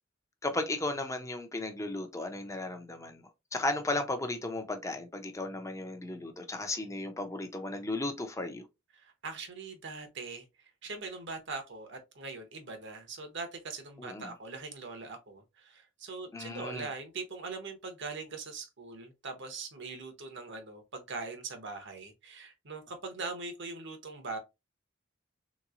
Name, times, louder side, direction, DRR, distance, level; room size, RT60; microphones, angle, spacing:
voice 1, 0.4-8.7 14.0-14.3 16.3-16.9, left 2 dB, 15° left, 0.5 m, -35 dB
voice 2, 8.9-10.4 10.8-24.4, right 4 dB, 60° right, 0.9 m, -41 dB
3.5 x 3.0 x 2.4 m
head